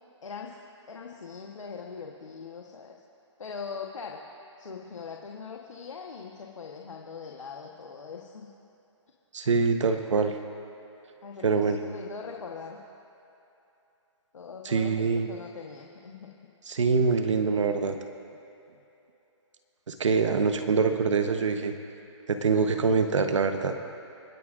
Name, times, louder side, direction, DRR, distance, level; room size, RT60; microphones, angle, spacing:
voice 1, 0.2-0.6 0.9-2.9 3.4-4.2 4.6-8.5 11.2-12.8 14.3-16.3, left 5 dB, 90° left, 0 dB, 1.3 m, -41 dB
voice 2, 9.3-10.3 11.4-11.8 14.6-15.3 16.7-18.0 19.9-21.7 22.3-23.7, right 4 dB, 75° right, 7 dB, 1.1 m, -24 dB
28.5 x 9.7 x 2.6 m, 3.0 s
hypercardioid pair, 170°, 16 cm